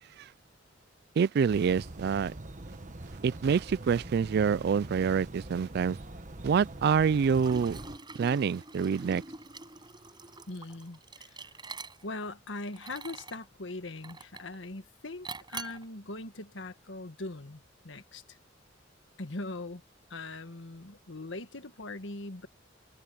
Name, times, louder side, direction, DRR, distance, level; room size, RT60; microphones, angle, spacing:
voice 1, 1.2-2.3 3.2-6.0 6.4-7.8 8.2-9.2, right 6 dB, 55° right, 0.3 m, -26 dB
sound 1, 1.5-8.0, right 1 dB, 40° right, 1.3 m, -44 dB
Liquid, 7.2-12.3 12.7-13.4 14.0-14.6 15.2-15.8, right 3 dB, 25° right, 5.5 m, -44 dB
voice 2, 10.5-11.5 12.0-18.4 19.2-19.8 20.1-22.5, left 2 dB, 70° left, 1.7 m, -41 dB
head